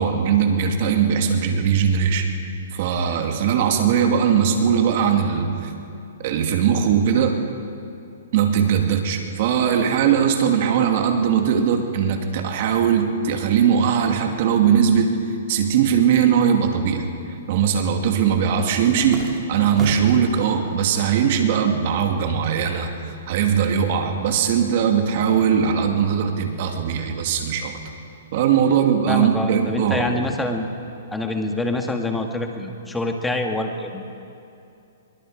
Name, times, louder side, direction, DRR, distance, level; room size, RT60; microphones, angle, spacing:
voice 1, 0.0-2.3 2.7-5.7 6.2-7.4 8.3-15.2 15.5-17.1 17.5-27.8 28.3-30.1, right 7 dB, 50° right, 4 dB, 2.6 m, -20 dB
sound 1, 17.2-17.3 17.5-20.3 20.8-21.5 21.8-23.4, right 2 dB, 20° right, 3.3 m, -36 dB
voice 2, 29.1-30.7 31.1-34.2, left 2 dB, 5° left, 3 dB, 1.8 m, -26 dB
23.5 x 22.5 x 5.1 m, 2.6 s
hypercardioid pair, 145°, 0 cm